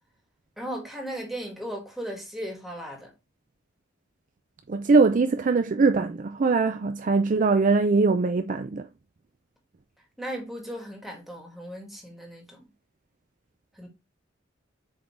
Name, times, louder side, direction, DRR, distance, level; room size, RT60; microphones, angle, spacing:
voice 1, 0.6-3.1 10.2-12.6 13.7-13.9, equal, ahead, 2.2 m, -36 dB
voice 2, 4.7-8.9, right 4 dB, 45° right, 0.4 m, -22 dB
7.9 x 3.7 x 3.2 m
head